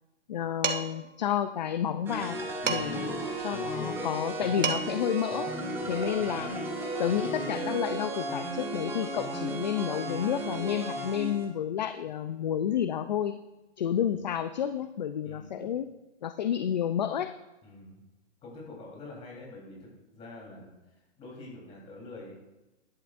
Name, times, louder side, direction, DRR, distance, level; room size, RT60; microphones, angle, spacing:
voice 1, 0.3-2.4 2.7-5.5 5.9-6.6 7.0-13.4 13.8-15.9 16.2-17.3, left 9 dB, 40° left, 10 dB, 0.5 m, -30 dB
Dishes pots and pans, 0.6-1.1 2.7-3.1 4.3-4.4 4.6-5.1, right 6 dB, 80° right, 1.6 m, -31 dB
sound 1, 2.1-11.5, right 1 dB, 5° right, 0.9 m, -34 dB
voice 2, 5.8-6.1 13.8-14.0 15.2-15.7 17.6-18.0 18.4-22.3, left 2 dB, 15° left, -3 dB, 3.7 m, -47 dB
15.5 x 11.5 x 2.6 m, 1.0 s
hypercardioid pair, 155°, 36 cm